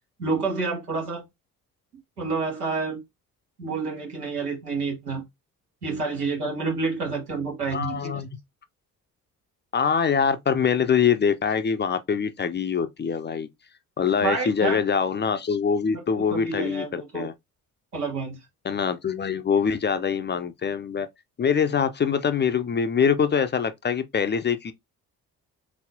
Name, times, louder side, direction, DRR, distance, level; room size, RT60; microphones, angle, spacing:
voice 1, 0.2-1.2 2.2-3.0 3.6-5.2 5.8-8.2 14.2-14.8 15.9-16.0 16.3-17.3 17.9-18.4, right 4 dB, 85° right, 1.3 m, -28 dB
voice 2, 7.7-8.4 9.7-13.5 14.0-17.3 18.6-21.1 21.4-24.7, left 6 dB, 25° left, 0.5 m, -24 dB
4.1 x 4.1 x 2.7 m
figure-of-eight pair, 40°, 45 cm